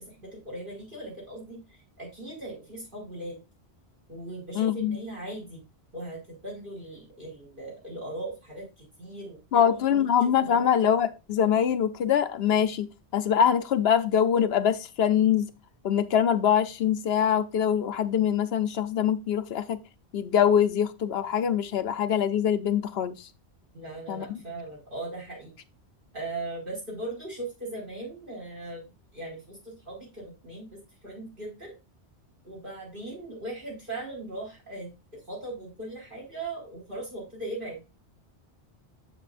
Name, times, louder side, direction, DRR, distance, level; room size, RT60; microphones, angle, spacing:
voice 1, 0.0-1.6 2.0-3.4 4.1-5.6 5.9-10.7 23.7-25.6 26.1-28.8 29.1-31.7 32.4-37.8, right 2 dB, 50° right, 5.3 m, -39 dB
voice 2, 4.6-5.0 9.5-12.9 13.1-15.5 15.8-19.8 20.1-23.2 24.1-24.4, left 8 dB, 70° left, 0.8 m, -24 dB
7.5 x 7.5 x 2.5 m
omnidirectional pair, 1.1 m